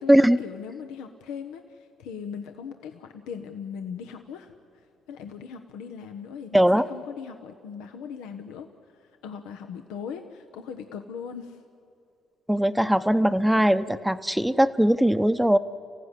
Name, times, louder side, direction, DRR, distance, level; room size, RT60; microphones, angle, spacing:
voice 1, 0.0-11.6, left 7 dB, 85° left, 5 dB, 1.1 m, -39 dB
voice 2, 6.5-6.9 12.5-15.6, equal, 5° right, 11 dB, 0.8 m, -20 dB
29.5 x 15.5 x 10.0 m, 2.7 s
supercardioid pair, 70°, 0 cm